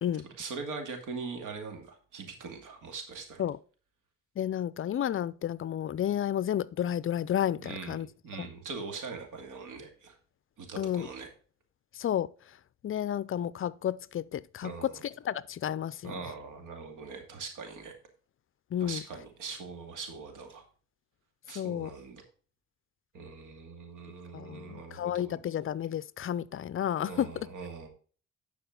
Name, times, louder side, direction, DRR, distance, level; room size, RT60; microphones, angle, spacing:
voice 1, 0.4-3.4 7.6-10.2 10.6-11.3 14.6-15.0 16.0-17.9 18.8-20.6 21.5-22.2 23.1-25.4 27.0-27.9, right 4 dB, 85° right, 2.4 m, -42 dB
voice 2, 4.4-8.1 8.4-8.5 10.8-11.1 11.9-12.6 12.8-14.9 15.2-16.1 18.7-19.0 21.5-21.9 24.3-27.5, left 10 dB, 45° left, 0.5 m, -31 dB
11.0 x 5.0 x 3.8 m
cardioid pair, 90°, 30 cm